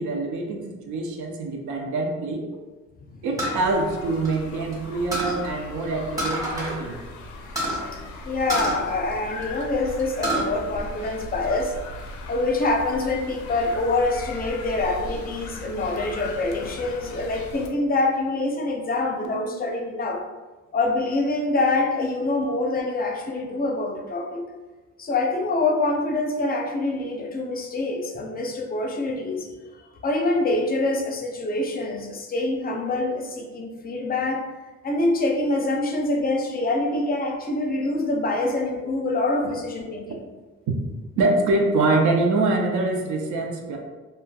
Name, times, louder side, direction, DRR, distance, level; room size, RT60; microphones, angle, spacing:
voice 1, 0.0-2.5 3.2-7.0 19.2-19.7 40.7-40.8 41.2-43.8, right 2 dB, 75° right, 1 dB, 0.6 m, -25 dB
sound 1, 3.4-4.7 5.1-5.5 6.2-6.8 7.1-7.2 7.6-7.8 8.5-9.6 10.0-10.5 10.9-11.7, right 1 dB, 10° right, 1.0 m, -28 dB
sound 2, 3.5-17.7, left 2 dB, 80° left, 0.5 m, -38 dB
voice 2, 8.2-11.7 12.3-20.2 20.7-24.4 25.0-29.5 30.0-34.5 34.8-40.2, left 2 dB, 30° left, 1 dB, 0.5 m, -25 dB
3.1 x 2.2 x 2.2 m, 1.2 s
cardioid pair, 90°, 30 cm